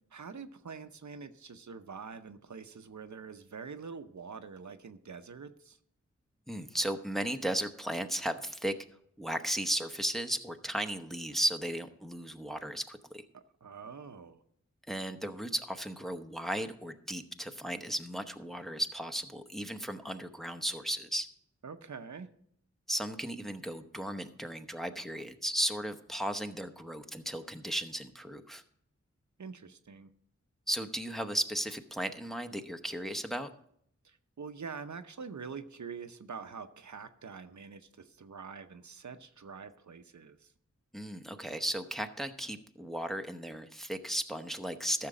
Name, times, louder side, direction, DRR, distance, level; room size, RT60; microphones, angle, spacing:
voice 1, 0.1-5.8 13.3-14.4 21.6-22.3 29.4-30.1 34.0-40.5, right 5 dB, 75° right, 9 dB, 0.8 m, -45 dB
voice 2, 6.5-8.7 9.2-13.2 14.9-21.3 22.9-28.6 30.7-33.5 40.9-45.1, right 1 dB, ahead, 6 dB, 0.9 m, -35 dB
14.0 x 6.7 x 5.0 m, 0.68 s
wide cardioid pair, 60°, 29 cm